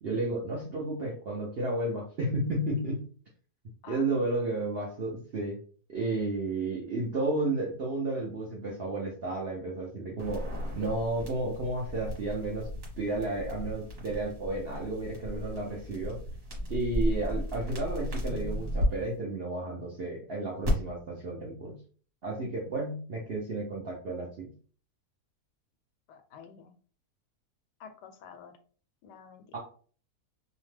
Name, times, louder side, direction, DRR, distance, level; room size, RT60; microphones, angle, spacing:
voice 1, 0.0-3.1 3.9-5.6 5.9-10.5 10.7-16.2 16.7-21.8 22.2-24.5 29.5-29.6, right 2 dB, 65° right, -2 dB, 0.6 m, -32 dB
sound 1, 10.2-18.9 20.6-20.7, equal, 40° right, 1.2 m, -35 dB
voice 2, 26.1-26.7 27.8-28.6 29.0-29.6, left 7 dB, 90° left, 8 dB, 1.2 m, -49 dB
2.8 x 2.1 x 3.2 m, 0.43 s
omnidirectional pair, 1.8 m